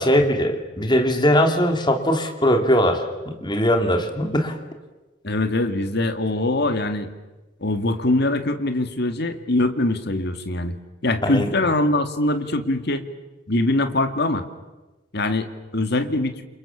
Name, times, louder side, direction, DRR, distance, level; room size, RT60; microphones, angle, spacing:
voice 1, 0.0-4.6 11.2-11.6, equal, 25° left, 5 dB, 3.0 m, -20 dB
voice 2, 5.2-7.1 7.6-10.7 11.0-13.0 13.5-14.4 15.1-16.4, left 2 dB, 60° left, 7 dB, 2.3 m, -23 dB
29.0 x 28.0 x 7.4 m, 1.1 s
head